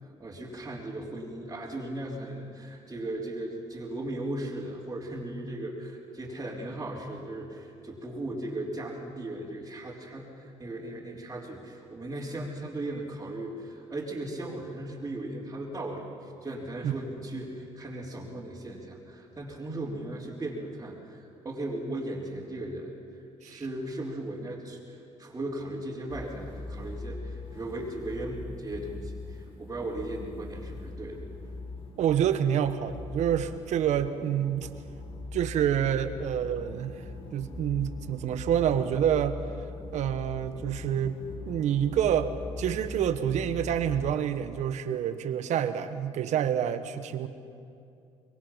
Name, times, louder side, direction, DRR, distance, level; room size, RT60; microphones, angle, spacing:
voice 1, 0.0-23.0 23.4-31.2, right 1 dB, 25° right, -8 dB, 3.7 m, -37 dB
sound 1, 26.1-44.2, left 3 dB, 50° left, 4.3 m, -41 dB
voice 2, 32.0-34.7 35.3-37.0 37.3-39.4 39.9-41.2 41.5-42.3 42.6-47.3, right 9 dB, 70° right, 10 dB, 1.3 m, -27 dB
25.0 x 22.0 x 5.8 m, 2.5 s
supercardioid pair, 80°, 13 cm